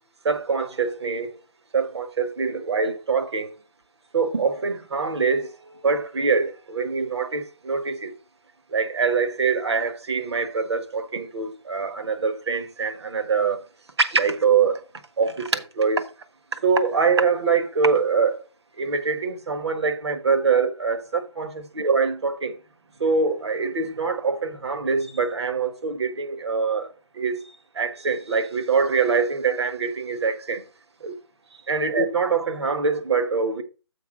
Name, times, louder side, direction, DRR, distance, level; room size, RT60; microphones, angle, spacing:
voice 1, 0.2-1.4 1.7-3.5 4.1-5.6 5.8-8.1 8.7-13.6 14.0-14.8 15.2-16.1 16.5-18.4 18.8-22.5 23.0-26.9 27.1-27.5 27.7-30.6 31.0-31.1 31.7-33.6, right 5 dB, 70° right, 1.5 m, -24 dB
7.1 x 4.5 x 6.1 m
hypercardioid pair, 170°, 14 cm